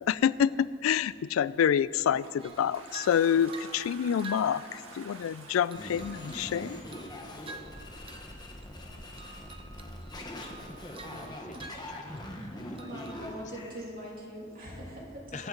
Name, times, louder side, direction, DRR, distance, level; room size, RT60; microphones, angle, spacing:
voice 1, 0.1-6.8, left 8 dB, 85° left, 20 dB, 0.3 m, -27 dB
Toilet flush, 1.7-8.0, right 3 dB, 80° right, 1.5 m, -49 dB
sound 1, 2.4-5.2 5.7-8.4 8.6-8.9 9.2-12.5 12.8-13.2, right 3 dB, 25° right, 0.8 m, -49 dB
sound 2, 5.8-13.8, left 1 dB, 20° left, 1.2 m, -42 dB
voice 2, 11.1-12.2 12.6-13.4 15.3-15.5, left 4 dB, 35° left, 8 dB, 0.7 m, -46 dB
voice 3, 12.8-15.4, equal, 45° right, -4 dB, 3.0 m, -42 dB
22.5 x 7.9 x 3.9 m, 2.4 s
head